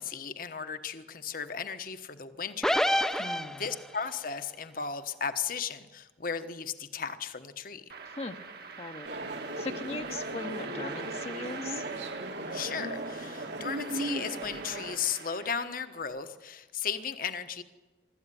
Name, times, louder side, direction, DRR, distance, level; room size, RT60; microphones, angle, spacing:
voice 1, 0.0-2.8 3.0-7.8 12.5-17.6, left 6 dB, 50° left, 10 dB, 1.2 m, -36 dB
sound 1, 2.6-4.0, equal, 5° left, 0.7 m, -27 dB
voice 2, 3.2-3.6 8.1-8.4 8.8-9.1 9.6-11.8, left 3 dB, 35° left, 5 dB, 1.0 m, -39 dB
sound 2, 7.9-16.0, right 5 dB, 55° right, 1.6 m, -44 dB
sound 3, 9.0-15.0, right 1 dB, 75° right, 2.4 m, -37 dB
24.0 x 13.5 x 9.9 m, 1.2 s
head